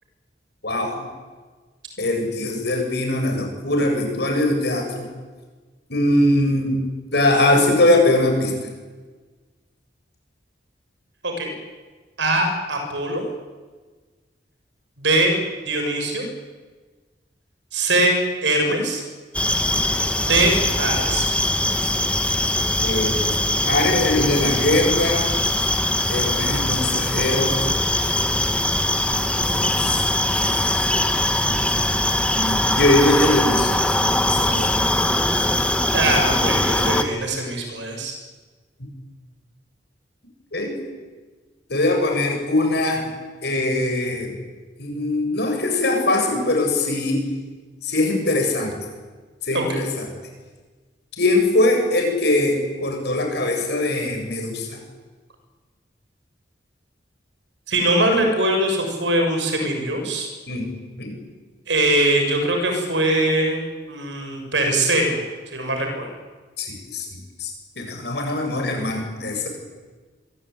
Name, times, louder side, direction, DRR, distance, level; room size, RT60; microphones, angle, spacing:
voice 1, 0.6-1.1 2.0-5.1 5.9-6.8 7.1-8.7 22.8-25.4 26.1-27.6 29.4-30.0 30.3-30.8 32.3-33.7 34.3-34.9 40.5-40.8 41.7-43.1 43.4-44.3 44.8-47.3 47.8-48.7 49.4-50.1 51.2-54.8 60.5-60.7 61.0-61.2 66.6-67.5 67.8-69.5, left 1 dB, 65° left, 3 dB, 7.6 m, -21 dB
voice 2, 12.2-13.2 15.0-15.4 15.7-16.3 17.7-18.2 18.4-19.0 20.2-21.3 35.9-38.1 49.5-49.8 57.7-60.3 61.7-65.2 65.5-66.1, right 1 dB, 80° right, 4 dB, 7.2 m, -21 dB
sound 1, 19.3-37.0, left 1 dB, 5° left, 1.7 m, -21 dB
26.5 x 22.0 x 9.6 m, 1.4 s
head